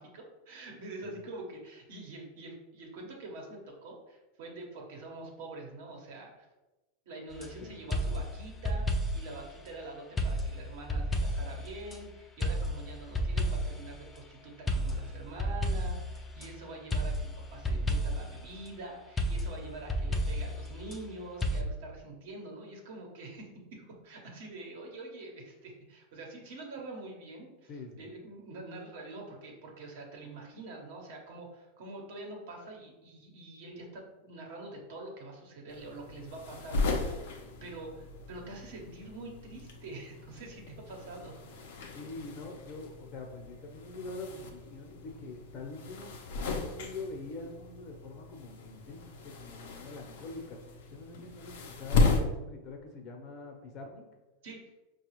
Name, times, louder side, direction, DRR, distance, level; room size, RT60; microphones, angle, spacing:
voice 1, 0.0-6.5 7.1-27.7 28.0-41.3 54.4-54.7, right 2 dB, 70° right, 1 dB, 1.0 m, -45 dB
sound 1, 7.3-7.5 7.9-9.4 10.2-12.0 12.4-13.9 14.7-16.5 16.9-18.4 19.2-21.0 21.4-21.6, equal, 15° left, 0.5 m, -31 dB
voice 2, 27.7-28.1 41.9-46.1 46.8-54.0, left 3 dB, 50° left, 2 dB, 0.8 m, -44 dB
sound 2, 35.7-52.2, left 3 dB, 75° left, 0.6 m, -36 dB
4.7 x 2.3 x 3.0 m, 1.1 s
hypercardioid pair, 115°, 0 cm